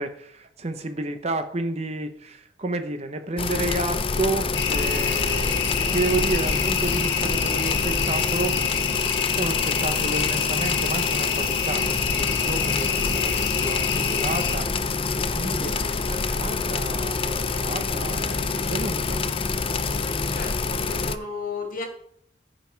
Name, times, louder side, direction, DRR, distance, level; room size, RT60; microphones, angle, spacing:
voice 1, 0.0-8.6 9.4-14.7 15.3-19.2, right 2 dB, 35° right, 0.8 m, -31 dB
sound 1, 3.4-21.2, left 4 dB, 30° left, 0.5 m, -26 dB
sound 2, 4.5-14.6, left 6 dB, 80° left, 1.1 m, -27 dB
voice 2, 20.3-21.9, left 4 dB, 50° left, 2.1 m, -34 dB
14.5 x 5.4 x 4.6 m
head